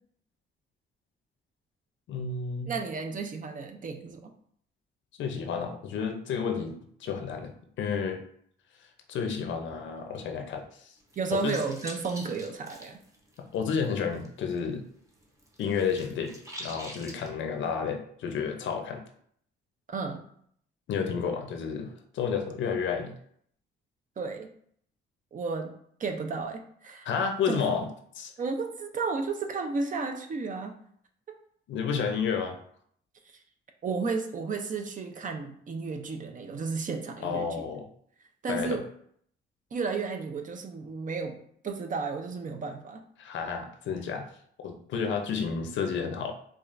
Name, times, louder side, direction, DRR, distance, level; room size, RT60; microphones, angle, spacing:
voice 1, 2.1-2.7 5.2-6.7 7.0-7.5 7.8-8.2 9.1-10.9 11.4-11.6 13.4-14.8 15.6-16.3 16.6-19.0 20.9-23.1 27.1-27.9 28.2-28.3 31.7-32.6 37.2-37.9 38.5-38.8 43.2-44.3 44.6-46.3, left 6 dB, 70° left, 4 dB, 0.7 m, -31 dB
voice 2, 2.7-4.3 11.2-13.0 19.9-20.2 24.2-24.5 25.3-25.7 26.0-27.1 27.5-27.6 28.4-30.8 33.8-37.5 38.4-38.9 39.7-43.0, right 4 dB, 40° right, 5 dB, 0.6 m, -33 dB
sound 1, 11.0-14.7 14.9-17.3, equal, 15° right, 0.9 m, -45 dB
4.9 x 2.4 x 2.5 m, 0.64 s
cardioid pair, 90°, 20 cm